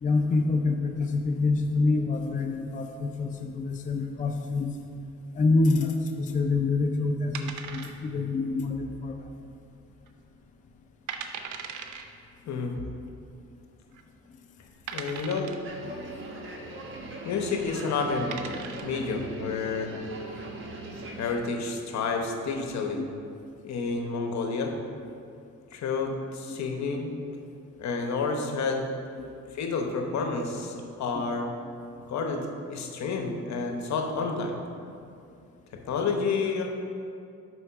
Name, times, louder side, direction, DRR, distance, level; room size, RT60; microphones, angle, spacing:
voice 1, 0.0-4.7 5.3-9.2 23.0-23.1 26.5-26.6 31.1-31.3, left 3 dB, 25° left, 4 dB, 0.4 m, -26 dB
sound 1, 7.3-8.3 8.6-8.7 9.3-9.7 10.1-10.2 10.7-10.8 11.1-12.0 13.1-13.2 13.9-14.0 14.9-15.7 17.5-17.7 18.1-19.0, right 7 dB, 80° right, 0.6 m, -38 dB
voice 2, 14.9-15.5 17.2-18.3 18.8-19.9 21.2-23.0 23.6-24.7 25.7-27.1 27.8-28.8 29.5-31.5 32.1-34.6 35.9-36.6, left 4 dB, 65° left, 3 dB, 0.9 m, -29 dB
sound 2, 15.6-21.4, right 2 dB, 40° right, 1.0 m, -40 dB
5.7 x 4.6 x 5.6 m, 2.5 s
cardioid pair, 90°, 30 cm